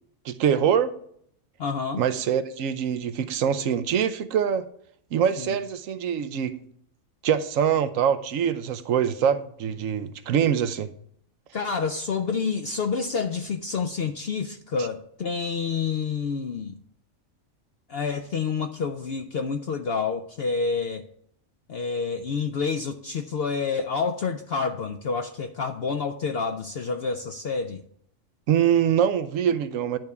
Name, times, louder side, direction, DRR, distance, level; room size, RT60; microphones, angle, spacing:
voice 1, 0.2-0.9 2.0-4.6 5.1-6.6 7.2-10.9 28.5-30.0, right 8 dB, 75° right, 11 dB, 1.0 m, -24 dB
voice 2, 1.6-2.0 5.4-5.6 11.5-16.8 17.9-21.0 21.7-27.8, left 5 dB, 60° left, 6 dB, 0.7 m, -28 dB
10.5 x 3.5 x 6.7 m, 0.65 s
omnidirectional pair, 1.4 m